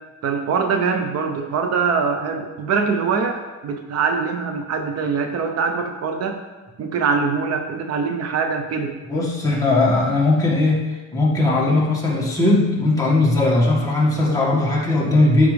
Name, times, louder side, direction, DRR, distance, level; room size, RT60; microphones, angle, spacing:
voice 1, 0.2-6.4 6.8-8.9, right 5 dB, 55° right, 5 dB, 0.8 m, -23 dB
voice 2, 9.0-15.5, left 2 dB, 10° left, -5 dB, 1.9 m, -18 dB
13.0 x 5.0 x 3.5 m, 1.2 s
cardioid pair, 150°, 30 cm